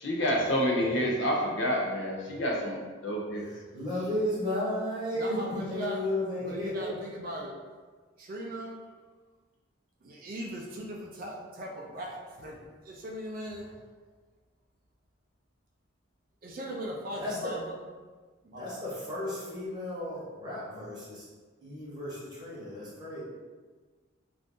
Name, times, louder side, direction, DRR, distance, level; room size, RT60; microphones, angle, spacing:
voice 1, 0.0-3.5, equal, 55° left, -1 dB, 0.5 m, -28 dB
voice 2, 3.7-6.9 17.2-17.5 18.5-21.2 21.6-23.2, left 1 dB, 20° right, -8 dB, 0.9 m, -33 dB
voice 3, 5.1-6.0 6.4-7.5 8.2-8.7 10.0-12.6 12.8-13.8 16.4-17.8 18.4-18.6, right 1 dB, 45° right, -1 dB, 0.4 m, -39 dB
2.6 x 2.5 x 3.5 m, 1.4 s
head